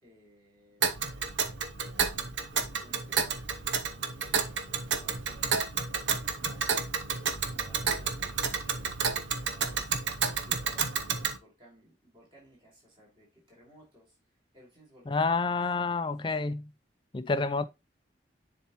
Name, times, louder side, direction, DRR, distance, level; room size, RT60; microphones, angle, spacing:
voice 1, 0.0-1.1 2.1-6.6 7.3-8.9 9.4-9.9 10.4-14.2 14.5-16.5, equal, 30° right, 5.4 m, -58 dB
Tick, 0.8-11.4, right 6 dB, 90° right, 0.9 m, -31 dB
voice 2, 15.1-16.7 17.1-17.7, left 4 dB, 25° left, 0.4 m, -28 dB
10.0 x 4.5 x 3.0 m
head